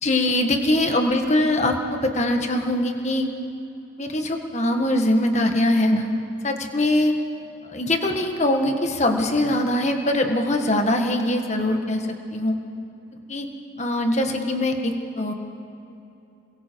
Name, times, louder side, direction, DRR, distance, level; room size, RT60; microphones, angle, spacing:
voice 1, 0.0-3.3 4.0-6.1 6.4-7.1 7.6-12.0 12.3-12.5 13.3-13.5 13.8-15.3, left 1 dB, 35° left, 4 dB, 1.7 m, -22 dB
28.0 x 22.5 x 4.7 m, 2.8 s
head